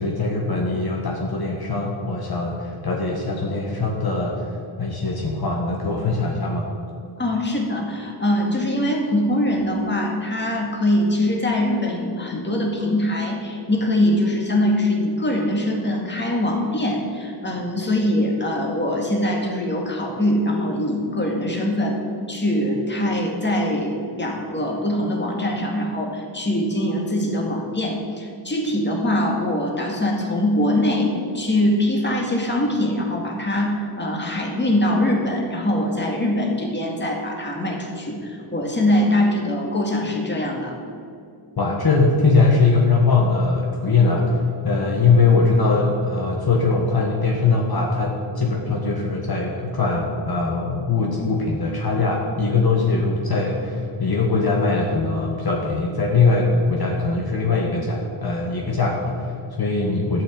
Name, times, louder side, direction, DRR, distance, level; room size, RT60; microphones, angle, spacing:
voice 1, 0.0-4.5 4.8-6.7 41.6-60.2, left 3 dB, 50° left, -1 dB, 1.5 m, -21 dB
voice 2, 7.2-22.0 22.3-40.8, left 1 dB, 20° left, 0 dB, 2.2 m, -23 dB
12.5 x 6.1 x 8.6 m, 2.5 s
wide cardioid pair, 120°, 48 cm